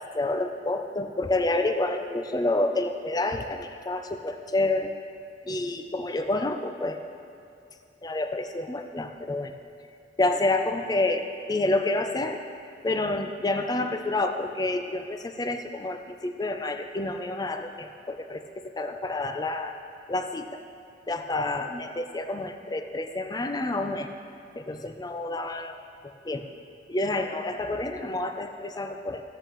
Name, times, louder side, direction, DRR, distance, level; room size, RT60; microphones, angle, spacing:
voice 1, 0.0-4.9 5.5-7.0 8.0-9.5 10.2-12.4 12.8-18.4 18.8-19.8 20.1-20.6 21.1-24.1 24.6-25.8 26.2-26.4 26.9-29.2, left 2 dB, 20° left, 6 dB, 0.4 m, -28 dB
13.5 x 8.6 x 3.0 m, 2.6 s
head